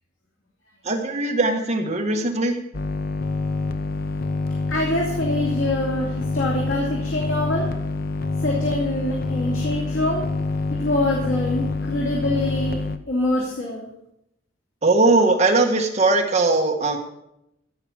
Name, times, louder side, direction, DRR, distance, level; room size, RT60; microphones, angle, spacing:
voice 1, 0.8-2.6 14.8-17.0, right 3 dB, 35° right, 2 dB, 1.7 m, -20 dB
sound 1, 2.7-13.0, left 3 dB, 50° left, 0.7 m, -26 dB
voice 2, 4.7-7.7 8.4-10.2 10.8-12.8 13.1-13.9, left 1 dB, 85° left, -3 dB, 2.8 m, -25 dB
15.0 x 5.9 x 7.4 m, 0.83 s
head